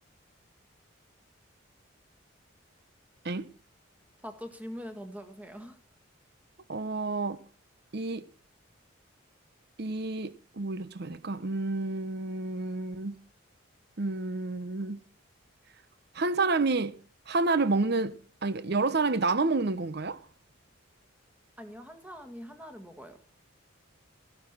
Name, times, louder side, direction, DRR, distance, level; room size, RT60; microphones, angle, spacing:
voice 1, 4.2-5.8 21.6-23.2, equal, 5° right, 1.7 m, -43 dB
voice 2, 6.7-7.4 7.9-8.2 9.8-13.2 14.0-15.0 16.1-17.0 17.3-20.2, right 3 dB, 50° right, 0.8 m, -29 dB
13.5 x 12.0 x 6.0 m
head